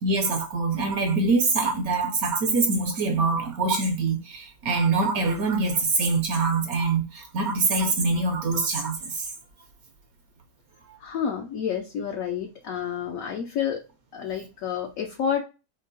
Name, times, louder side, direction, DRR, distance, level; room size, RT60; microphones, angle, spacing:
voice 1, 0.0-9.3, right 3 dB, 70° right, 1.0 m, -24 dB
voice 2, 11.0-13.8 14.1-15.4, left 8 dB, 70° left, 0.9 m, -29 dB
4.5 x 2.4 x 2.5 m
omnidirectional pair, 1.8 m